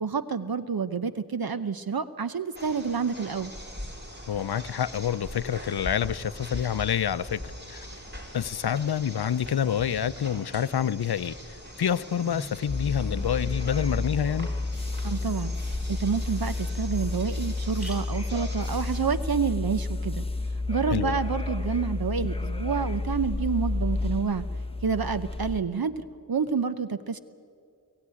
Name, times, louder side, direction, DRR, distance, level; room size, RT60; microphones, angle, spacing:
voice 1, 0.0-3.5 15.0-20.2 20.7-24.5 24.8-27.2, right 6 dB, 65° right, 0.8 m, -29 dB
sound 1, 2.5-19.0, equal, 25° right, 4.0 m, -42 dB
voice 2, 4.3-7.4 7.7-7.9 8.3-11.4 11.8-14.5 20.9-21.2, left 9 dB, 75° left, 0.6 m, -27 dB
sound 2, 12.7-25.6, left 2 dB, 15° left, 1.0 m, -31 dB
sound 3, 17.5-21.3, equal, ahead, 4.8 m, -51 dB
23.0 x 15.5 x 9.9 m
wide cardioid pair, 45°, 38 cm